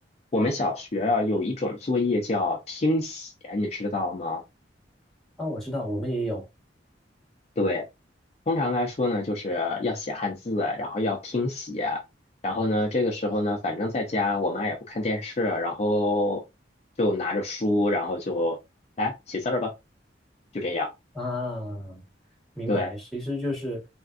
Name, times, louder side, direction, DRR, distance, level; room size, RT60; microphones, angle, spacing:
voice 1, 0.3-4.4 7.6-7.8 8.5-12.0 12.4-16.4 17.0-18.6 19.0-19.7 20.5-20.9 22.7-22.9, left 2 dB, 35° left, 0.5 m, -26 dB
voice 2, 5.4-6.5 21.1-22.0 22.5-23.8, left 1 dB, ahead, 1.3 m, -31 dB
3.4 x 2.5 x 2.4 m
head